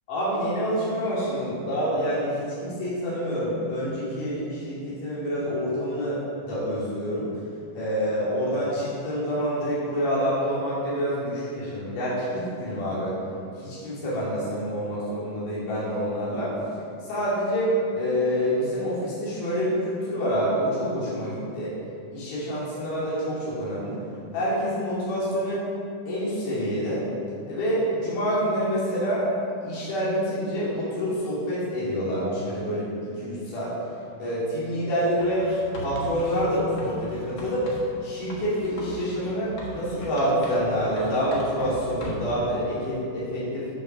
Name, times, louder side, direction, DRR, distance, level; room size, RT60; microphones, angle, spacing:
voice 1, 0.1-7.3 7.7-13.2 13.6-16.6 17.0-21.7 22.1-24.0 24.3-25.6 26.1-27.0 27.4-29.3 29.6-33.7 34.2-35.5 35.8-37.7 38.0-43.7, equal, 65° left, -9 dB, 4.2 m, -27 dB
Writing, 35.2-37.9 38.3-40.7 41.0-42.4, right 1 dB, 50° left, 1.5 m, -39 dB
8.9 x 6.4 x 6.1 m, 2.5 s
omnidirectional pair, 4.0 m